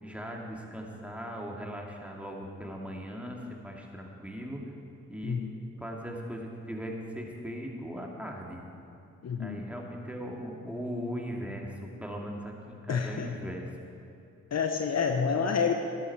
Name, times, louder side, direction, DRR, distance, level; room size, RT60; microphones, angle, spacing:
voice 1, 0.0-4.6 5.1-5.4 5.8-8.6 9.4-13.7, equal, 5° right, -1 dB, 2.5 m, -39 dB
voice 2, 9.2-9.6 12.9-13.4 14.5-15.8, left 6 dB, 50° left, 5 dB, 1.0 m, -28 dB
13.0 x 10.5 x 4.8 m, 2.7 s
hypercardioid pair, 45°, 34 cm